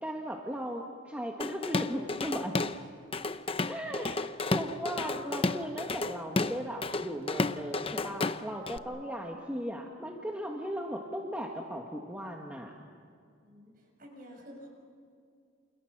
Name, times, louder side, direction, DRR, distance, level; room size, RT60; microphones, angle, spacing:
voice 1, 0.0-2.6 3.7-4.1 4.5-12.7, equal, 5° right, 0 dB, 1.7 m, -37 dB
Drum kit / Drum, 1.4-2.8 3.1-8.8, left 3 dB, 25° left, 0.7 m, -32 dB
voice 2, 13.4-14.7, equal, 40° right, 1 dB, 6.5 m, -51 dB
29.0 x 29.0 x 6.2 m, 2.3 s
head